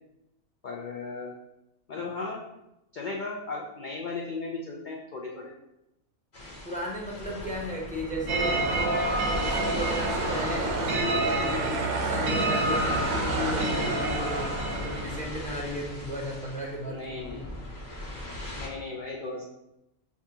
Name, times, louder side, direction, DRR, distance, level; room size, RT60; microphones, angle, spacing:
voice 1, 0.6-1.3 1.9-2.4 2.9-5.5 16.9-17.4 18.6-19.4, left 3 dB, 80° left, -1 dB, 0.4 m, -36 dB
sound 1, 6.3-18.7, left 1 dB, 35° left, 1.0 m, -38 dB
voice 2, 6.4-11.7 12.0-17.5, equal, 10° left, -2 dB, 0.4 m, -35 dB
sound 2, 8.3-15.3, right 2 dB, 85° right, 1.2 m, -28 dB
7.1 x 2.4 x 2.7 m, 0.89 s
omnidirectional pair, 1.4 m